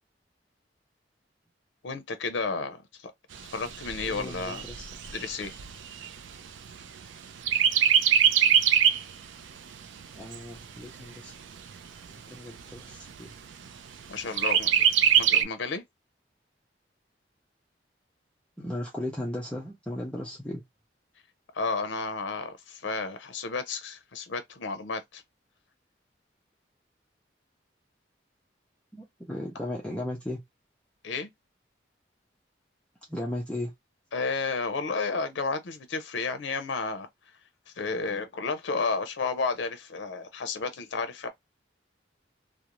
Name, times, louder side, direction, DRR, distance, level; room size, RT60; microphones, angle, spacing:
voice 1, 1.8-2.8 3.0-3.1 3.5-4.7 5.1-5.5 14.1-14.7 15.1-15.8 21.5-25.2 31.0-31.3 34.1-37.1 37.8-41.3, left 4 dB, 80° left, 0.5 m, -32 dB
Chirp tweet, 3.3-7.1 7.5-9.1 9.6-9.7 10.0-11.0 11.6-11.7 12.0-12.1 12.6-13.1 14.4-15.4, right 9 dB, 85° right, 0.4 m, -23 dB
voice 2, 4.0-4.9 10.1-11.3 12.3-13.3 18.6-20.6 28.9-30.4 33.1-33.7, left 1 dB, 5° left, 0.5 m, -36 dB
2.5 x 2.0 x 2.9 m
head